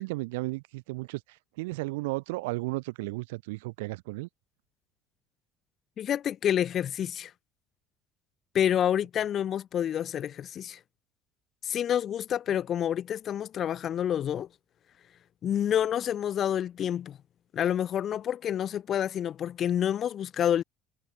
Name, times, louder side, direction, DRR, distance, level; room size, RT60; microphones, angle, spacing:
voice 1, 0.0-4.3 12.5-12.6, right 23 dB, 80° right, 7.0 m, -34 dB
voice 2, 6.0-7.3 8.5-10.8 11.6-14.5 15.4-17.2 17.5-20.6, left 10 dB, 50° left, 6.2 m, -28 dB
hypercardioid pair, 70°, 0 cm